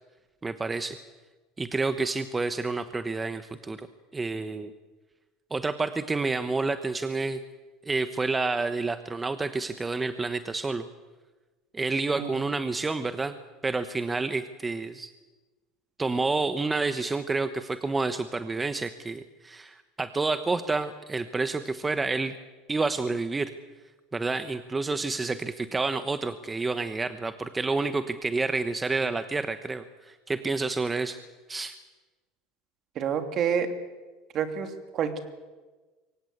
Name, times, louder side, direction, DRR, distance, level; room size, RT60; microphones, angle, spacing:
voice 1, 0.4-1.0 1.6-3.9 4.1-4.7 5.5-7.4 7.8-10.9 11.7-13.3 13.6-15.1 16.0-22.4 22.7-23.5 24.1-31.2 31.5-31.8, right 3 dB, 20° right, 10 dB, 1.2 m, -29 dB
voice 2, 32.9-33.7 34.3-35.2, right 7 dB, 50° right, 7 dB, 3.0 m, -28 dB
24.0 x 17.5 x 8.1 m, 1.3 s
hypercardioid pair, 85°, 0 cm